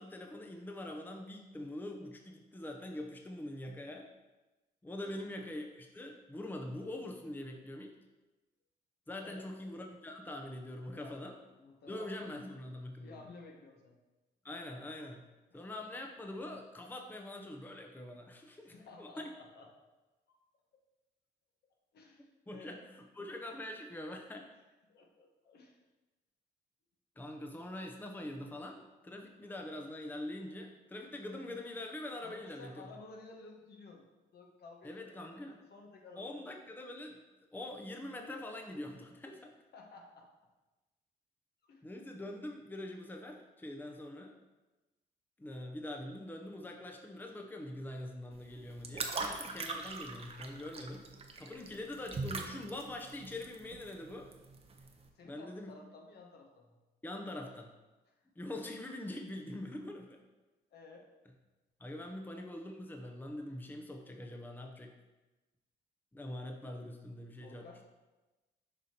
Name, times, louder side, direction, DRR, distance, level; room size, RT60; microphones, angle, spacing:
voice 1, 0.0-4.1 4.8-7.9 9.1-11.3 11.9-13.3 14.4-15.2 15.5-19.3 22.5-24.5 27.2-32.7 34.8-35.6 36.2-37.2 37.5-39.5 41.8-44.4 45.4-51.1 51.4-54.3 55.2-55.7 57.0-57.7 58.4-60.2 61.8-64.9 66.1-67.7, left 1 dB, 10° left, 2 dB, 0.7 m, -44 dB
voice 2, 5.0-5.4 9.2-9.5 10.8-12.2 13.0-14.0 15.5-15.6 18.6-19.7 20.3-20.4 21.9-22.8 24.9-25.8 32.2-34.1 34.3-36.4 39.7-40.3 41.6-41.9 55.1-56.8 58.1-58.2 60.7-61.1 67.4-67.8, left 3 dB, 65° left, 1 dB, 1.2 m, -54 dB
sound 1, 48.3-55.1, right 3 dB, 35° right, 0.8 m, -42 dB
6.7 x 5.0 x 2.9 m, 1.1 s
cardioid pair, 80°, 18 cm